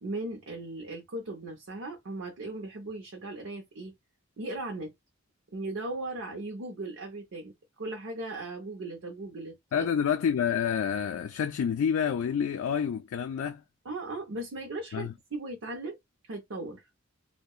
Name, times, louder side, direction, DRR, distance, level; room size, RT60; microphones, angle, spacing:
voice 1, 0.0-3.9 4.4-4.9 5.5-7.5 7.8-9.9 13.8-16.0 16.3-16.9, right 2 dB, 65° right, 0.6 m, -37 dB
voice 2, 9.7-13.6 14.9-15.1, left 7 dB, 75° left, 0.3 m, -28 dB
2.7 x 2.2 x 2.3 m
head